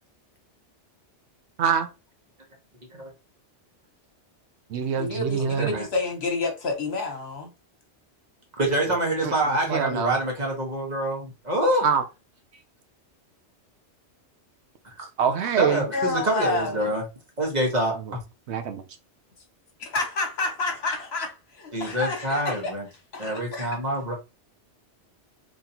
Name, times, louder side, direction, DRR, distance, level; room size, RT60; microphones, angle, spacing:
voice 1, 1.6-1.9 4.7-5.7 8.9-9.0 9.2-10.2 11.8-12.0 15.2-15.9 17.9-18.2 18.5-18.8, right 7 dB, 75° right, 0.9 m, -25 dB
voice 2, 5.0-7.5 15.7-16.9 19.8-22.7 23.1-23.8, left 3 dB, 65° left, 1.3 m, -29 dB
voice 3, 8.6-11.8 14.8-15.1 15.6-17.0 17.4-18.2 21.7-22.9 23.2-24.1, right 1 dB, 40° right, 1.3 m, -26 dB
3.9 x 3.1 x 2.8 m
omnidirectional pair, 1.2 m